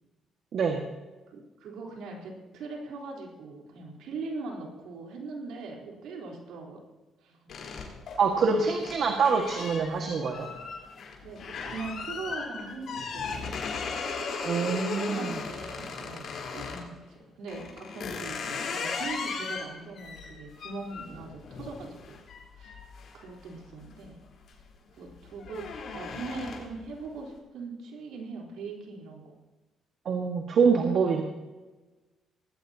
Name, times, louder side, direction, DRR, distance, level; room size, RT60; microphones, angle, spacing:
voice 1, 1.3-6.8 7.2-7.5 11.2-13.5 14.3-22.2 22.6-22.8 23.1-24.2 24.9-25.7 25.9-29.3, right 3 dB, 85° right, -1 dB, 3.8 m, -41 dB
sound 1, 7.5-16.9 17.5-23.9 24.3-24.7 25.0-26.8, left 5 dB, 65° left, 4.0 m, -37 dB
voice 2, 8.2-10.5 14.4-15.3 30.1-31.2, right 5 dB, 60° right, 2 dB, 1.7 m, -25 dB
19.0 x 16.0 x 2.9 m, 1.2 s
cardioid pair, 90°, 0 cm